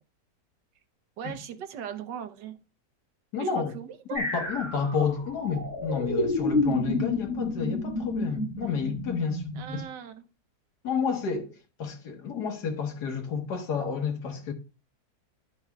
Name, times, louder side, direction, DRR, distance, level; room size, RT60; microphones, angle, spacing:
voice 1, 1.2-2.6 3.4-4.2 9.5-10.2, right 9 dB, 80° right, 1.4 m, -39 dB
voice 2, 3.3-3.7 4.1-9.8 10.8-11.5 11.8-14.5, left 6 dB, 70° left, 1.8 m, -30 dB
sound 1, 4.1-9.8, left 2 dB, 10° right, 1.1 m, -30 dB
12.5 x 5.6 x 2.3 m
omnidirectional pair, 1.9 m